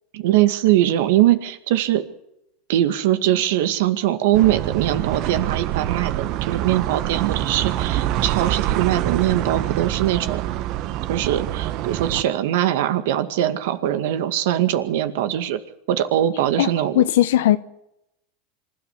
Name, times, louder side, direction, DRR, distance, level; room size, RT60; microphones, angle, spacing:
voice 1, 0.1-2.1 2.7-10.4 11.1-15.6 15.9-17.0, right 12 dB, 75° right, 2.1 m, -21 dB
sound 1, 4.3-12.2, right 13 dB, 55° right, 1.2 m, -25 dB
voice 2, 16.6-17.6, left 13 dB, 80° left, 1.0 m, -18 dB
26.5 x 13.0 x 8.5 m
supercardioid pair, 105°, 0 cm